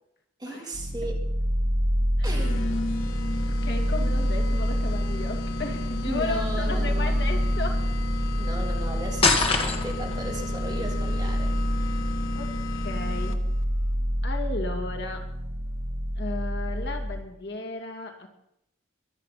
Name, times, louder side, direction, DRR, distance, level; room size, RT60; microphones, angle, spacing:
voice 1, 0.4-1.2 2.2-2.7 6.1-7.1 8.4-11.5, right 1 dB, 20° right, -1 dB, 3.1 m, -36 dB
sound 1, 0.7-17.2, equal, 70° right, 2.0 m, -28 dB
sound 2, 2.3-13.6, left 2 dB, 80° left, 1.2 m, -34 dB
voice 2, 3.5-7.9 12.3-13.4 14.2-15.3 16.2-18.3, left 2 dB, 55° left, 3 dB, 2.4 m, -34 dB
sound 3, 9.2-10.2, left 3 dB, 30° left, 1.9 m, -22 dB
23.0 x 9.3 x 5.8 m, 0.78 s
head